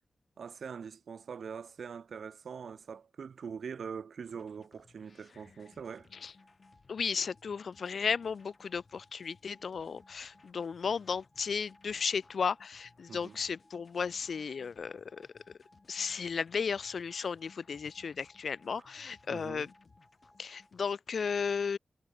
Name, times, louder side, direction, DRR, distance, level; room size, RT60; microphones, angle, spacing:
voice 1, 0.4-6.1 13.1-13.4 19.3-19.6, right 6 dB, 80° right, 0.8 m, -43 dB
sound 1, 4.3-20.8, left 4 dB, 40° left, 2.0 m, -64 dB
sound 2, 5.6-20.7, left 1 dB, 5° left, 5.1 m, -66 dB
voice 2, 6.9-15.3 15.9-19.7 20.4-21.8, left 6 dB, 65° left, 0.7 m, -34 dB
wide cardioid pair, 170°, 0 cm